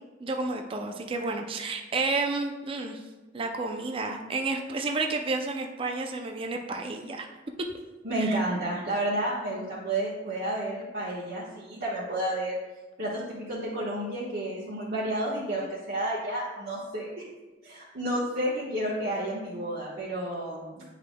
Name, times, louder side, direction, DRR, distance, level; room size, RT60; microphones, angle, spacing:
voice 1, 0.2-3.0 3.3-7.3 8.2-8.4, right 3 dB, 30° right, 3 dB, 0.4 m, -31 dB
voice 2, 8.0-12.6 13.0-17.1 17.6-20.8, right 1 dB, 55° right, -9 dB, 1.2 m, -31 dB
9.2 x 5.0 x 2.2 m, 1.2 s
head